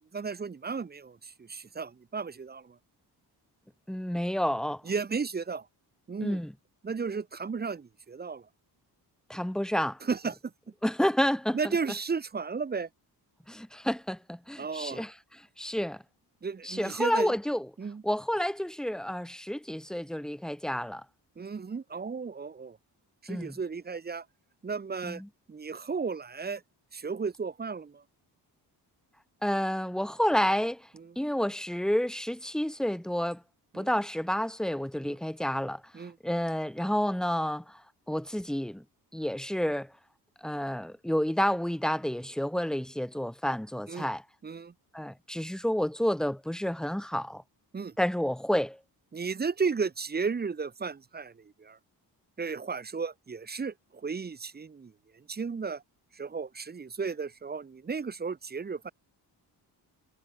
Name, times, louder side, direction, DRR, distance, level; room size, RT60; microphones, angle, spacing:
voice 1, 0.1-2.8 4.8-5.7 6.1-6.4 6.8-8.5 10.0-10.5 11.5-12.9 14.6-15.0 16.4-17.3 17.8-18.0 21.4-22.8 23.2-24.3 24.6-25.2 25.5-26.6 26.9-28.0 30.9-31.1 33.7-33.9 35.0-35.2 35.9-36.2 43.9-44.1 44.4-44.7 47.7-47.9 49.1-51.8 52.4-55.8 56.1-58.9, right 5 dB, 25° right, 1.0 m, -34 dB
voice 2, 3.9-4.8 6.2-6.5 9.3-10.0 10.8-11.7 13.5-15.1 15.6-16.0 16.6-17.7 18.0-21.0 23.3-23.6 25.0-25.3 29.4-30.9 31.2-33.4 33.7-35.8 36.2-37.8 38.1-38.8 39.1-39.9 40.4-44.2 44.9-47.4 48.0-48.8, equal, ahead, 1.0 m, -30 dB
wide cardioid pair, 145°, 40 cm